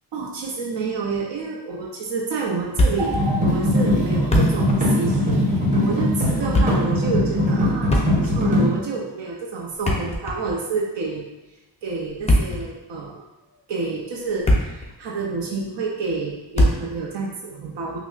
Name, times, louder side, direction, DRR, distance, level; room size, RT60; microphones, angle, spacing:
voice 1, 0.1-5.5 5.8-11.3 11.8-13.2 13.7-18.0, right 4 dB, 80° right, -2 dB, 0.6 m, -28 dB
Thump thud, 2.8-3.3 3.5-3.6 4.1-4.8 5.1-5.3 6.3-6.9 7.8-8.5 9.7-10.6 12.1-12.7 13.4-13.6 14.1-14.9 15.2-15.3 16.6-17.0, left 1 dB, 15° left, 0.4 m, -21 dB
sound 1, 3.0-8.7, left 1 dB, 20° right, 0.8 m, -20 dB
5.5 x 2.1 x 2.3 m, 1.1 s
wide cardioid pair, 150°, 43 cm